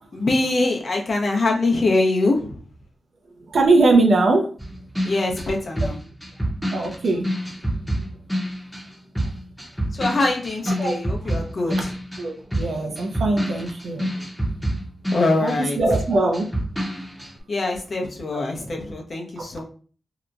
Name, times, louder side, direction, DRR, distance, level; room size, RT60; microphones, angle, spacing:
voice 1, 0.1-2.6 5.0-6.0 9.9-11.9 15.1-15.8 17.5-19.6, left 2 dB, 55° left, 1 dB, 0.7 m, -23 dB
voice 2, 3.4-4.5 6.7-7.3 10.8-11.3 11.7-11.8 12.2-14.2 15.4-16.5 18.3-18.4 19.4-19.6, right 2 dB, 75° right, 1 dB, 0.5 m, -21 dB
sound 1, 4.6-8.9 9.1-15.6 15.9-17.3, equal, 5° left, 0.7 m, -27 dB
2.9 x 2.2 x 2.4 m, 0.41 s
cardioid pair, 45°, 0 cm